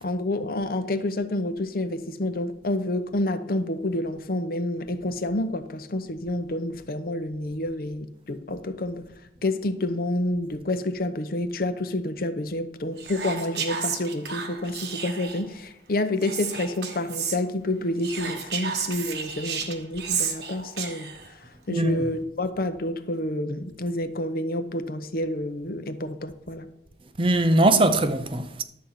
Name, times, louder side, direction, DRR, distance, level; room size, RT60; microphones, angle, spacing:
voice 1, 0.0-9.0 9.4-21.1 21.7-26.7, left 1 dB, 55° left, 0.7 m, -29 dB
Whispering, 13.0-15.5 16.2-17.4 18.0-21.3, right 6 dB, 70° right, 1.2 m, -32 dB
voice 2, 21.7-22.1 27.2-28.6, right 1 dB, 30° right, 0.6 m, -21 dB
11.5 x 4.3 x 7.9 m
head